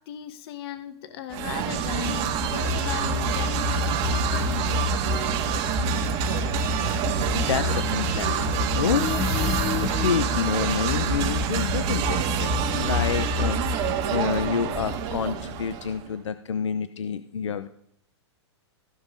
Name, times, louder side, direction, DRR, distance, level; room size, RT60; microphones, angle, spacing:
voice 1, 0.1-4.8, left 8 dB, 60° left, 10 dB, 1.2 m, -37 dB
sound 1, 1.3-16.0, right 4 dB, 40° right, 1.8 m, -26 dB
voice 2, 7.3-9.2 9.8-13.6 14.1-17.7, left 7 dB, 85° left, 11 dB, 0.7 m, -28 dB
sound 2, 8.8-10.3, left 5 dB, 30° left, 1.2 m, -29 dB
15.5 x 5.5 x 5.2 m, 0.68 s
hypercardioid pair, 115°, 15 cm